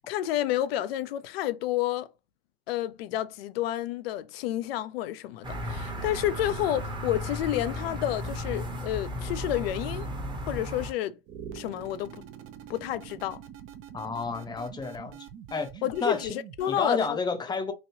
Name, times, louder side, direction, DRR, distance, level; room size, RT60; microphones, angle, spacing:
voice 1, 0.1-2.1 2.7-10.1 10.5-11.2 11.5-12.2 12.7-13.4 15.8-17.2, left 13 dB, 80° left, 0.5 m, -30 dB
sound 1, 5.4-10.9, equal, 15° right, 0.9 m, -35 dB
sound 2, 11.3-17.0, right 9 dB, 45° right, 0.6 m, -45 dB
voice 2, 13.9-15.3 15.5-15.7 16.0-16.4 16.7-17.7, left 4 dB, 15° left, 0.6 m, -30 dB
3.1 x 2.6 x 2.6 m
hypercardioid pair, 105°, 30 cm